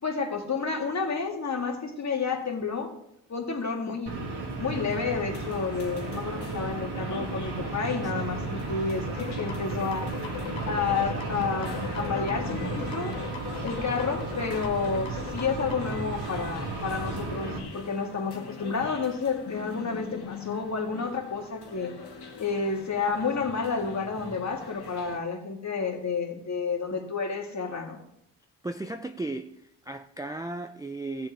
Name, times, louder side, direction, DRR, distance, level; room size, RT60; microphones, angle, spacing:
voice 1, 0.0-2.9 3.3-4.3 4.6-10.1 10.7-13.2 13.6-21.9 22.4-28.0, left 5 dB, 40° left, 1.8 m, -30 dB
sound 1, 4.1-17.6, right 3 dB, 65° right, 2.3 m, -34 dB
sound 2, 5.3-25.2, left 4 dB, 65° left, 1.9 m, -43 dB
sound 3, 9.1-15.9, left 10 dB, 90° left, 1.0 m, -40 dB
voice 2, 28.6-31.3, right 2 dB, 10° right, 0.3 m, -35 dB
16.0 x 7.4 x 3.4 m
cardioid pair, 105°, 43 cm